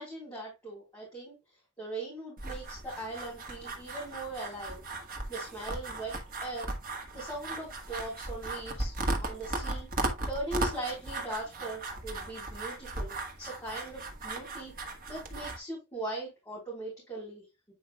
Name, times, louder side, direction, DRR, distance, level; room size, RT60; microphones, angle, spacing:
voice 1, 0.0-1.4 1.8-4.8 5.3-6.1 6.4-6.7 7.1-8.9 9.2-9.9 10.3-14.7 15.1-17.7, right 2 dB, 15° left, 3.9 m, -40 dB
sound 1, 2.4-15.6, right 2 dB, 45° right, 1.5 m, -37 dB
9.2 x 5.0 x 2.2 m
head